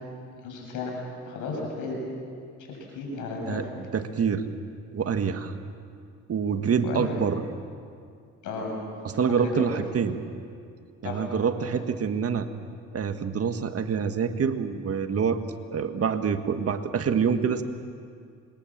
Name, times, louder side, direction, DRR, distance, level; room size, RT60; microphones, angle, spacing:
voice 1, 0.4-0.9 1.2-2.0 2.7-3.6 6.8-7.1 8.4-8.7 9.4-9.7 11.0-11.3 11.7-11.8, left 4 dB, 90° left, 0 dB, 7.5 m, -33 dB
voice 2, 3.9-4.4 4.9-5.5 6.3-7.4 9.0-10.2 11.0-12.5 12.9-15.4 15.7-17.6, right 6 dB, 50° right, 7 dB, 1.7 m, -26 dB
26.5 x 22.0 x 7.5 m, 2.3 s
cardioid pair, 90°, 30 cm